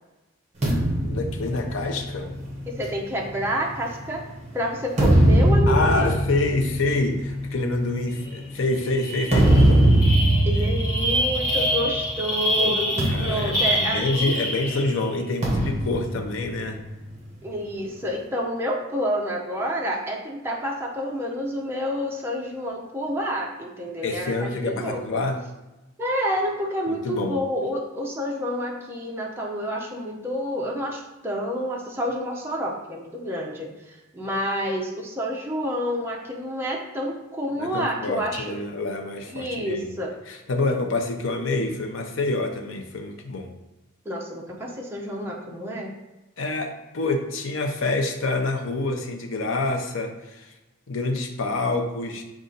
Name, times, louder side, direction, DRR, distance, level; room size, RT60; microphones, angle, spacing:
sound 1, 0.6-4.2 4.7-12.2 12.4-12.6 13.0-14.6 15.4-17.2, right 1 dB, 35° right, 0.8 m, -22 dB
voice 1, 1.0-2.3 5.7-9.8 12.5-16.8 24.0-25.4 26.9-27.4 37.6-40.0 40.3-43.5 46.4-50.5 50.9-52.2, left 2 dB, 65° left, 4 dB, 0.5 m, -27 dB
voice 2, 2.7-4.2 4.5-6.1 10.5-14.4 17.4-25.2 26.0-38.6 39.3-40.1 44.1-46.0, equal, 10° right, -2 dB, 0.5 m, -29 dB
sound 2, 8.3-8.4 8.7-15.1, equal, 45° left, 1.0 m, -27 dB
5.3 x 2.5 x 3.8 m, 1.0 s
head